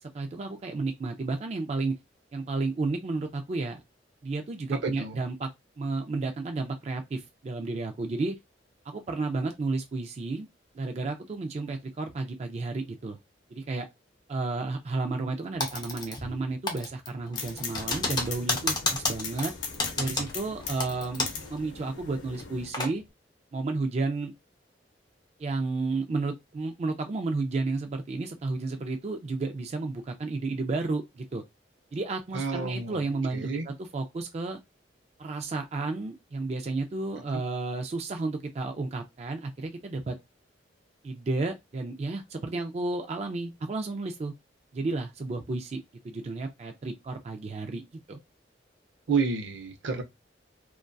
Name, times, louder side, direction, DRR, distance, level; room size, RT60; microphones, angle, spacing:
voice 1, 0.1-2.0 2.3-3.8 4.2-5.5 5.8-8.3 8.9-10.5 10.7-13.2 13.5-13.9 14.3-19.5 20.0-23.0 23.5-24.3 25.4-31.4 31.9-34.6 35.2-40.2 41.0-44.3 44.7-47.8 48.1-48.2, right 3 dB, 35° right, 0.3 m, -32 dB
voice 2, 4.8-5.2 32.3-33.0 33.3-33.7 37.3-37.4 49.1-50.0, right 4 dB, 80° right, 0.6 m, -29 dB
Typing, 15.6-16.4 16.7-21.5 21.8-21.9 22.3-22.9, left 2 dB, 25° left, 0.5 m, -31 dB
sound 1, 17.4-22.7, left 5 dB, 75° left, 0.6 m, -39 dB
2.5 x 2.2 x 2.2 m
head